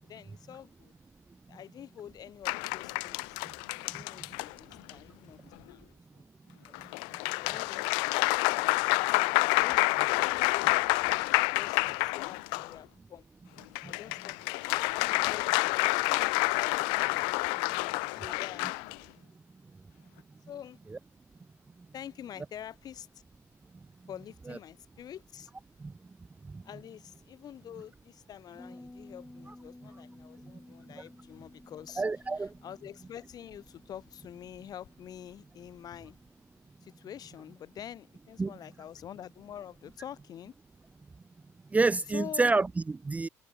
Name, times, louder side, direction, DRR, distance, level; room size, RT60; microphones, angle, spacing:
voice 1, 0.0-0.9 1.5-3.4 3.8-5.9 6.1-6.2 7.0-8.9 9.5-11.3 11.5-13.3 13.8-16.4 17.7-18.7 20.5-20.8 21.9-23.1 24.1-25.5 26.6-32.0 32.4-36.2 36.8-40.5 42.1-42.5, left 10 dB, 50° left, 8.0 m, -47 dB
sound 1, 2.5-4.9 6.7-12.7 13.6-19.0, left 33 dB, 80° left, 0.4 m, -28 dB
Bass guitar, 28.6-37.9, left 2 dB, 10° left, 7.7 m, -55 dB
voice 2, 32.0-32.5 38.4-38.5 41.7-43.3, right 3 dB, 15° right, 0.5 m, -27 dB
supercardioid pair, 80°, 8 cm